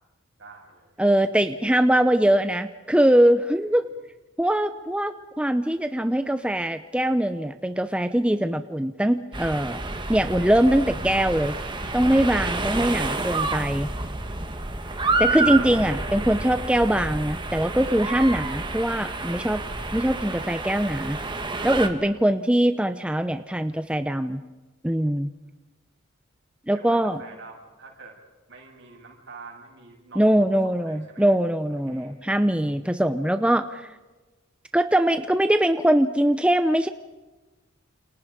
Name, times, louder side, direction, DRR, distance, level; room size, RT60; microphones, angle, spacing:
voice 1, 0.4-1.0 14.8-15.0 26.7-28.2 28.5-31.3 31.9-32.2, right 3 dB, 60° right, 0 dB, 7.9 m, -46 dB
voice 2, 1.0-3.9 4.4-9.8 10.1-11.5 11.9-13.9 15.2-19.6 19.9-21.2 21.6-24.4 24.8-25.3 26.7-27.2 30.2-33.9 34.7-36.9, right 1 dB, 5° right, 9 dB, 0.7 m, -22 dB
sound 1, 9.3-21.9, right 3 dB, 25° right, 2.0 m, -29 dB
29.5 x 29.0 x 5.3 m, 1.2 s
head